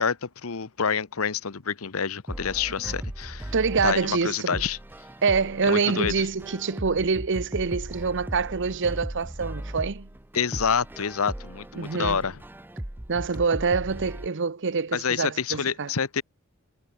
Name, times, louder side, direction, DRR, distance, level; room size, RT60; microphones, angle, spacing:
voice 1, 0.0-3.5 3.8-4.8 5.7-6.1 10.3-12.4 14.9-16.2, left 6 dB, 65° left, 0.9 m, -27 dB
sound 1, 2.3-14.3, right 1 dB, 10° right, 0.6 m, -37 dB
voice 2, 3.5-4.6 5.2-10.1 11.8-12.2 13.1-15.9, right 5 dB, 55° right, 0.8 m, -26 dB
head